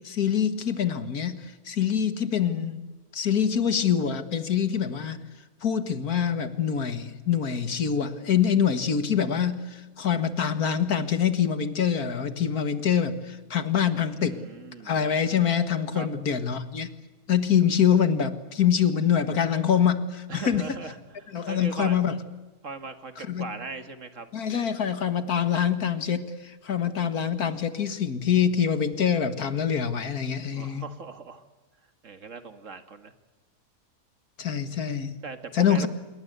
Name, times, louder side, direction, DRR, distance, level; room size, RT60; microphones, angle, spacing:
voice 1, 0.0-2.8 3.1-5.2 5.6-14.4 14.8-16.9 17.3-20.7 21.3-22.2 23.2-23.5 24.3-30.8 34.4-35.1 35.5-35.9, left 8 dB, 85° left, 11 dB, 2.2 m, -25 dB
voice 2, 13.9-14.9 15.9-16.1 20.3-22.0 22.6-24.3 30.5-31.4 32.0-33.1 35.2-35.9, right 4 dB, 55° right, 9 dB, 2.1 m, -39 dB
27.0 x 22.5 x 8.1 m, 1.3 s
omnidirectional pair, 1.5 m